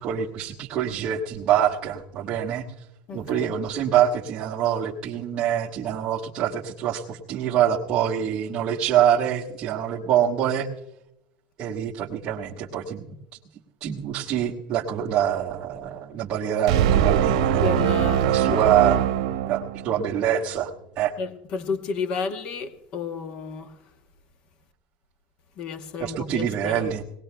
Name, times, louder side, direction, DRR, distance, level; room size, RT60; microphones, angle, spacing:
voice 1, 0.0-2.6 3.1-10.7 11.6-13.1 13.8-17.7 18.2-19.0 19.5-21.1 26.0-27.0, right 9 dB, 25° right, 1.2 m, -25 dB
voice 2, 3.1-3.5 17.6-18.6 21.2-23.9 25.6-27.0, left 5 dB, 35° left, 1.0 m, -32 dB
sound 1, 16.7-20.1, right 10 dB, 85° right, 0.8 m, -22 dB
20.0 x 18.5 x 2.2 m
supercardioid pair, 180°, 3 cm